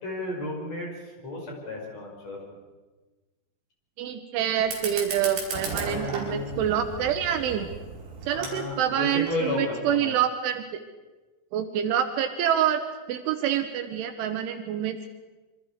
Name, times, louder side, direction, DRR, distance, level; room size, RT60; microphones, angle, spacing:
voice 1, 0.0-0.9 1.2-2.4 5.8-6.5 8.3-10.1, left 2 dB, 35° left, -1 dB, 6.1 m, -33 dB
voice 2, 4.0-7.7 8.2-10.8 11.5-12.8 13.1-15.1, right 9 dB, 75° right, 6 dB, 3.3 m, -26 dB
Fire, 4.6-9.6, right 4 dB, 55° right, 6.8 m, -36 dB
27.5 x 24.0 x 5.0 m, 1.2 s
omnidirectional pair, 5.9 m